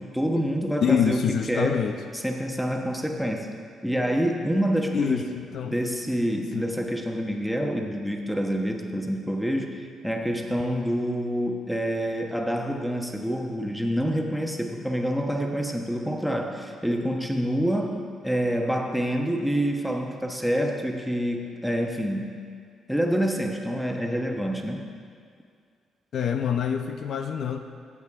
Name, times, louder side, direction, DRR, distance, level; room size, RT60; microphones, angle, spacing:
voice 1, 0.0-1.2 1.5-1.8 2.1-3.5 3.8-5.2 5.6-18.0 18.2-22.4 22.9-24.9, equal, ahead, 2 dB, 1.2 m, -27 dB
voice 2, 0.8-2.0 4.9-5.8 6.5-6.7 26.1-27.6, left 7 dB, 65° left, 6 dB, 0.6 m, -26 dB
14.5 x 8.4 x 3.6 m, 2.2 s
cardioid pair, 90°, 0 cm